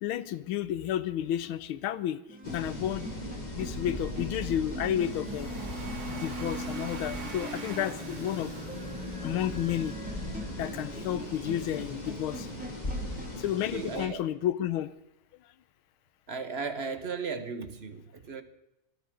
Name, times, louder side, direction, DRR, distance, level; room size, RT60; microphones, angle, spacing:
voice 1, 0.0-2.2 2.5-3.1 3.5-5.5 6.1-8.8 9.2-9.9 10.6-12.5 13.4-14.9, left 11 dB, 85° left, 15 dB, 1.6 m, -31 dB
sound 1, 2.3-13.5, equal, 5° right, 1.9 m, -42 dB
sound 2, 2.4-14.1, left 1 dB, 20° left, 2.2 m, -39 dB
Domestic sounds home sounds, 5.0-10.0, right 3 dB, 70° right, 3.1 m, -46 dB
voice 2, 13.7-14.2 16.3-18.4, right 5 dB, 40° right, 9 dB, 1.0 m, -36 dB
25.0 x 13.5 x 3.8 m, 0.88 s
omnidirectional pair, 2.3 m